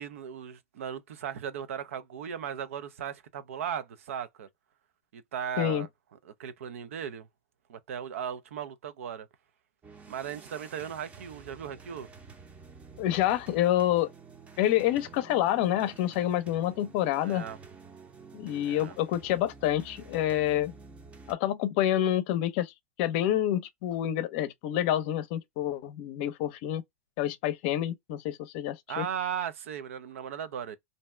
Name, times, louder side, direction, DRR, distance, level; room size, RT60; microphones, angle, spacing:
voice 1, 0.0-4.5 5.1-5.9 6.3-7.3 7.7-9.3 10.1-12.1 17.2-17.6 18.6-19.0 28.9-30.8, right 8 dB, 80° right, 0.5 m, -37 dB
sound 1, 9.8-21.3, right 4 dB, 20° right, 0.6 m, -50 dB
voice 2, 13.0-14.1 14.6-17.4 18.3-20.7 21.3-22.7 23.0-26.8 27.2-29.1, left 12 dB, 55° left, 0.6 m, -28 dB
2.6 x 2.3 x 3.1 m
hypercardioid pair, 125°, 7 cm